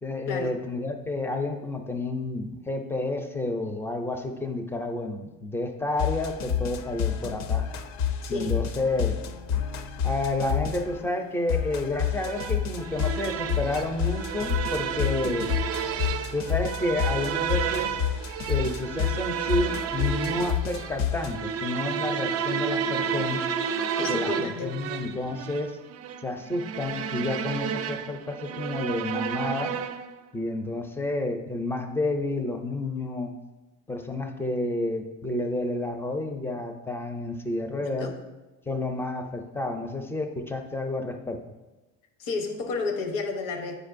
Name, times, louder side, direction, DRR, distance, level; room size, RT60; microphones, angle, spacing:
voice 1, 0.0-7.7 8.3-9.2 10.0-15.5 16.3-18.0 18.5-23.5 24.1-25.7 26.2-29.7 30.3-33.3 33.9-38.1 38.7-41.4, left 2 dB, 5° left, 5 dB, 0.4 m, -30 dB
sound 1, 6.0-11.0 11.5-21.3, left 8 dB, 60° left, 0.5 m, -29 dB
voice 2, 8.2-8.6 24.0-25.2 37.7-38.2 42.2-43.8, left 3 dB, 85° left, 5 dB, 0.9 m, -32 dB
sound 2, 12.2-30.2, right 7 dB, 50° right, 0.4 m, -31 dB
8.7 x 4.9 x 2.5 m, 1.1 s
cardioid pair, 145°, 32 cm